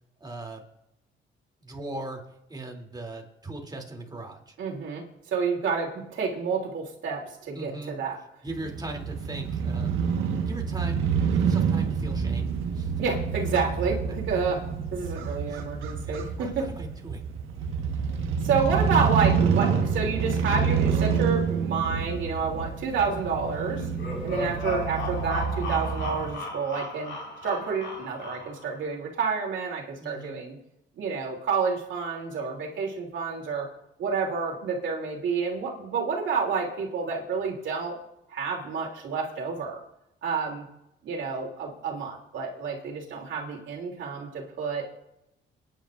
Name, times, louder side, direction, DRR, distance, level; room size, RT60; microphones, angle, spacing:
voice 1, 0.2-0.6 1.6-2.2 2.5-4.5 7.5-8.0 8.4-10.0 10.5-11.0 11.3-12.9 15.5-15.6 16.1-17.2 24.3-24.7 30.0-30.4, right 2 dB, 20° right, 1 dB, 2.9 m, -39 dB
voice 2, 4.6-8.2 13.0-14.6 14.9-16.7 18.4-23.9 24.2-27.2 27.4-30.6 31.0-33.7 34.0-38.0 38.3-39.8 40.2-40.6 41.0-44.8, right 5 dB, 70° right, 0 dB, 2.9 m, -29 dB
Crow / Motorcycle, 8.5-26.3, right 6 dB, 85° right, 1.4 m, -28 dB
sound 1, 23.7-28.8, left 3 dB, 75° left, 5.3 m, -36 dB
28.5 x 10.0 x 2.5 m, 0.83 s
cardioid pair, 90°, 20 cm